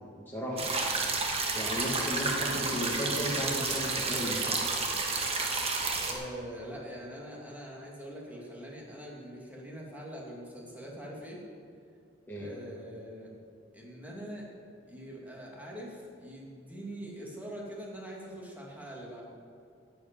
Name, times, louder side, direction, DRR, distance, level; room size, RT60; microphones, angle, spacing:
voice 1, 0.3-0.7 1.6-4.7 12.3-12.5, equal, 10° left, -6 dB, 1.8 m, -34 dB
sound 1, 0.6-6.1, right 3 dB, 30° right, 1.4 m, -31 dB
voice 2, 6.0-11.4 12.3-13.3 13.7-14.5 14.8-19.2, equal, 10° right, -3 dB, 2.3 m, -43 dB
10.5 x 7.8 x 8.8 m, 2.4 s
head